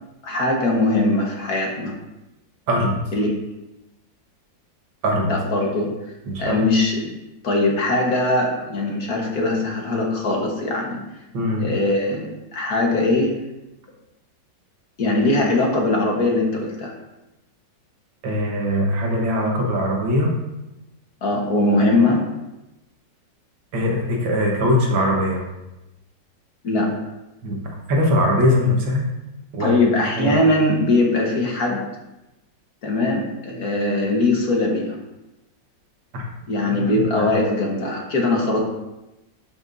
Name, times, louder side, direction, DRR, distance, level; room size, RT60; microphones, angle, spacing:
voice 1, 0.2-1.9 3.1-3.3 5.3-5.9 6.4-7.1 7.4-11.0 11.6-13.3 15.0-16.9 21.2-22.3 26.6-26.9 29.6-31.8 32.8-35.0 36.5-38.6, left 2 dB, 55° left, 0 dB, 1.7 m, -21 dB
voice 2, 2.7-3.0 5.0-5.3 6.3-6.6 11.3-11.7 18.2-20.4 23.7-25.5 27.4-27.6 27.9-29.1 29.5-29.8 30.2-30.4 36.1-36.2 36.7-36.8 37.1-37.3, left 1 dB, 90° right, -1 dB, 2.2 m, -21 dB
10.5 x 6.0 x 2.6 m, 0.98 s
omnidirectional pair, 2.0 m